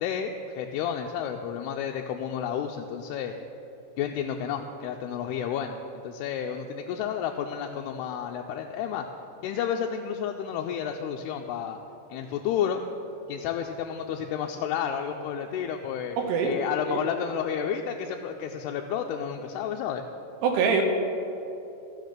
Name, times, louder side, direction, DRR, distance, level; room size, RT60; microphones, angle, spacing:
voice 1, 0.0-3.3 4.0-5.8 6.0-9.1 9.4-11.8 12.1-12.8 13.3-20.0, left 8 dB, 85° left, 2 dB, 2.6 m, -31 dB
voice 2, 16.2-16.5 16.9-17.0 20.4-20.8, right 6 dB, 85° right, 2 dB, 3.0 m, -24 dB
13.0 x 6.8 x 6.5 m, 2.9 s
omnidirectional pair, 4.6 m